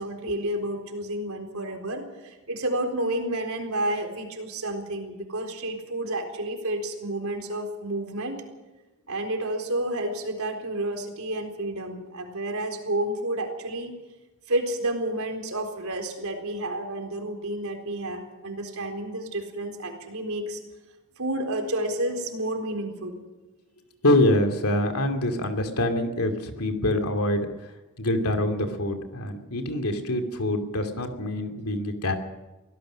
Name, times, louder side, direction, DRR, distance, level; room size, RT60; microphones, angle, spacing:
voice 1, 0.0-8.4 9.1-13.9 14.5-20.6 21.2-23.2, right 1 dB, 80° right, 3 dB, 4.1 m, -30 dB
voice 2, 24.0-27.5 28.0-32.2, left 1 dB, 85° left, 5 dB, 2.7 m, -25 dB
24.5 x 17.0 x 6.4 m, 1.1 s
head